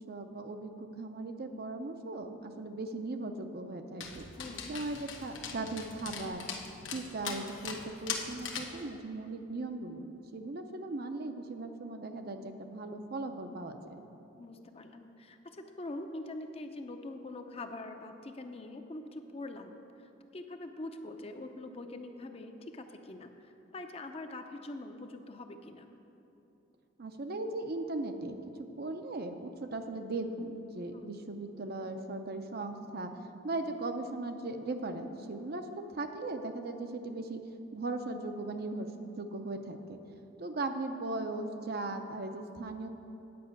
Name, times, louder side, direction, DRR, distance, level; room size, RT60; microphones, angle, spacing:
voice 1, 0.0-4.2 4.7-6.5 6.9-14.0 27.0-28.4 28.8-33.1 33.4-37.4 37.7-38.9 39.2-40.0 40.4-42.9, right 2 dB, 55° right, 6 dB, 0.6 m, -38 dB
Dog, 4.0-8.8, left 6 dB, 90° left, 1.0 m, -41 dB
voice 2, 4.4-4.7 14.4-19.8 20.3-25.9 30.9-31.1, left 2 dB, 30° left, 6 dB, 0.6 m, -44 dB
9.4 x 5.4 x 8.0 m, 3.0 s
head